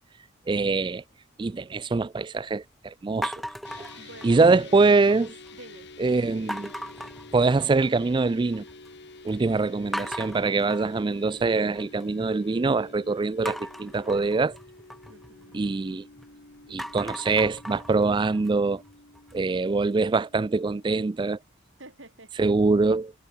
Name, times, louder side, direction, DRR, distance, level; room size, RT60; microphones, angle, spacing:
voice 1, 0.5-1.0 1.4-3.3 3.8-3.9 4.2-5.3 6.0-6.7 7.3-8.6 9.2-14.5 15.5-16.0 16.7-18.8 19.3-21.4 22.4-23.1, right 3 dB, 25° right, 0.3 m, -24 dB
sound 1, 3.2-4.7 5.1-5.6 6.5-8.0 8.3-8.9 9.3-9.4 9.9-12.1 13.5-16.3 16.6-19.6, equal, ahead, 1.1 m, -38 dB
sound 2, 3.6-21.1, left 3 dB, 55° left, 2.3 m, -49 dB
voice 2, 4.0-4.9 5.5-6.6 9.6-10.0 15.1-15.6 21.8-22.3, right 2 dB, 60° right, 4.6 m, -49 dB
head